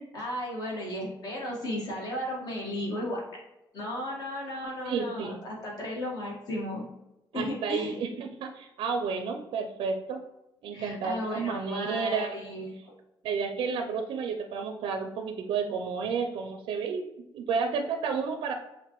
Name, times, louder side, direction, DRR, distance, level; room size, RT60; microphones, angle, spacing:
voice 1, 0.1-3.2 3.7-6.9 7.3-8.0 10.7-12.8, left 1 dB, 50° left, -3 dB, 1.6 m, -34 dB
voice 2, 4.8-5.4 7.3-10.2 10.6-12.3 13.2-17.1 17.3-18.5, right 5 dB, 80° right, 5 dB, 0.4 m, -31 dB
6.8 x 2.5 x 3.0 m, 0.92 s
cardioid pair, 145°, 9 cm